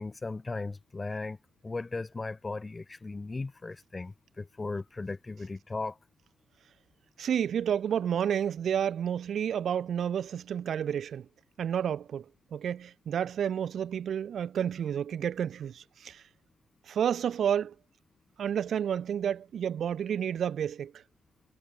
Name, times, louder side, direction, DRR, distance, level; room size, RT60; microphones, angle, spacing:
voice 1, 0.0-1.4 1.6-6.0, left 3 dB, 25° left, 2.5 m, -37 dB
voice 2, 7.2-11.3 11.6-12.2 12.5-16.2 16.9-17.7 18.4-20.9, right 8 dB, 60° right, 4.2 m, -30 dB
cardioid pair, 90°, 0 cm